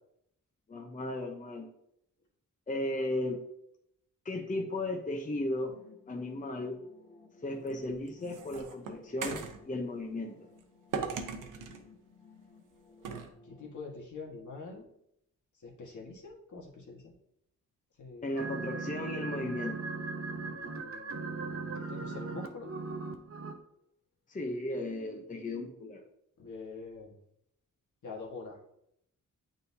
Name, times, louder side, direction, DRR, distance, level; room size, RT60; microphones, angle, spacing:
voice 1, 0.7-1.7 2.7-3.4 4.2-5.7 6.1-6.8 7.4-10.4 18.2-19.8 24.3-26.0, left 1 dB, 25° left, 2 dB, 0.8 m, -35 dB
sound 1, 5.7-13.7, left 4 dB, 40° left, 1.9 m, -58 dB
sound 2, 7.7-9.6 10.9-11.8 13.0-13.3, right 5 dB, 80° right, 0.8 m, -38 dB
voice 2, 13.4-14.9 15.6-17.1 18.0-18.3 20.3-22.7 26.4-27.2 28.0-28.6, left 4 dB, 65° left, -1 dB, 1.6 m, -45 dB
sound 3, 18.4-23.5, right 3 dB, 45° right, 0.8 m, -38 dB
9.0 x 3.9 x 2.7 m, 0.76 s
cardioid pair, 80°, 31 cm